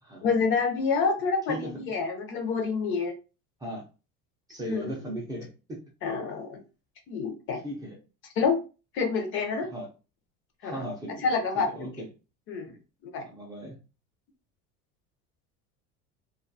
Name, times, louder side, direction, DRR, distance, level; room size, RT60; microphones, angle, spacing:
voice 1, 0.2-3.1 4.7-4.9 6.0-6.6 7.1-7.6 8.4-8.6 8.9-9.7 10.6-10.8 11.2-11.7 12.5-12.7 13.1-13.3, left 5 dB, 45° left, 4 dB, 0.5 m, -27 dB
voice 2, 1.5-1.8 3.6-3.9 4.5-5.8 7.6-8.0 9.7-9.9 10.6-11.2 11.6-12.1 12.7-12.8 13.2-13.8, equal, 15° right, -2 dB, 0.4 m, -37 dB
2.3 x 2.3 x 2.6 m, 0.32 s
cardioid pair, 165°, 30 cm